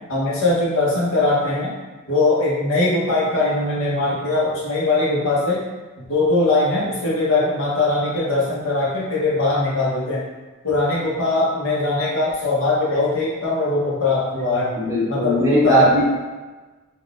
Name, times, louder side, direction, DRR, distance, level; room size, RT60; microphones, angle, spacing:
voice 1, 0.1-1.7 2.1-5.6 6.1-10.2 10.6-14.7 15.1-15.9, left 2 dB, 60° left, -6 dB, 0.9 m, -20 dB
voice 2, 14.8-16.0, right 1 dB, 15° right, -7 dB, 0.6 m, -18 dB
3.7 x 2.3 x 2.4 m, 1.3 s
head